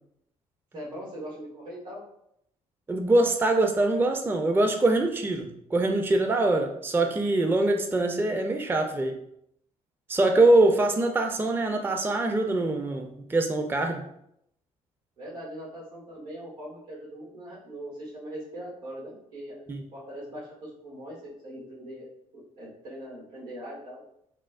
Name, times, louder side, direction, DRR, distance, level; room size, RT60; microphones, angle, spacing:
voice 1, 0.7-2.0 15.2-19.6 19.9-22.1 22.6-24.0, equal, 80° right, -5 dB, 1.3 m, -41 dB
voice 2, 2.9-9.2 10.1-14.0 19.7-19.8, right 2 dB, 10° right, 5 dB, 0.4 m, -23 dB
4.2 x 2.0 x 2.4 m, 0.74 s
figure-of-eight pair, 45°, 18 cm